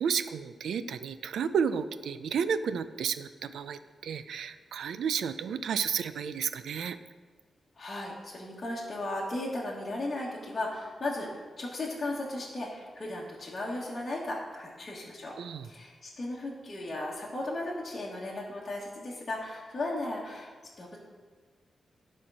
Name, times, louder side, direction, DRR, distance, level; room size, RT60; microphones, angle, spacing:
voice 1, 0.0-7.0 15.4-15.7, right 7 dB, 85° right, 12 dB, 0.4 m, -32 dB
voice 2, 7.7-15.3 15.6-21.0, left 2 dB, 25° left, -6 dB, 1.4 m, -36 dB
11.5 x 4.5 x 6.1 m, 1.4 s
wide cardioid pair, 175°, 0 cm